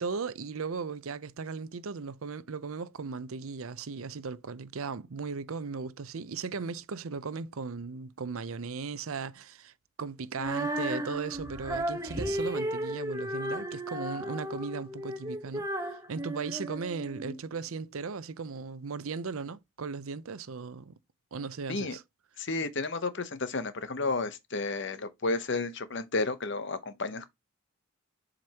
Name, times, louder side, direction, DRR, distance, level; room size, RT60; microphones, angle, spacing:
voice 1, 0.0-9.7 10.0-20.9 21.3-22.0, right 5 dB, 75° right, 0.6 m, -37 dB
Female singing, 10.4-17.4, right 1 dB, 15° right, 1.1 m, -34 dB
voice 2, 22.4-27.3, left 3 dB, 55° left, 0.8 m, -32 dB
7.6 x 5.1 x 2.9 m
head